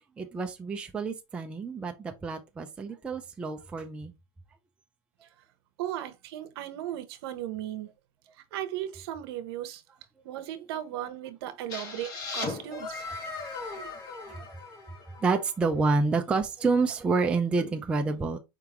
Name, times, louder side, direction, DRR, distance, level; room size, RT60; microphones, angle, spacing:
voice 1, 0.2-4.1 14.3-14.5 15.1-18.4, right 4 dB, 10° right, 0.4 m, -28 dB
voice 2, 5.8-7.9 8.5-9.8 10.2-13.0, right 12 dB, 70° right, 0.8 m, -36 dB
sound 1, 11.7-15.4, left 3 dB, 55° left, 3.1 m, -38 dB
4.7 x 3.6 x 2.9 m
supercardioid pair, 165°, 14 cm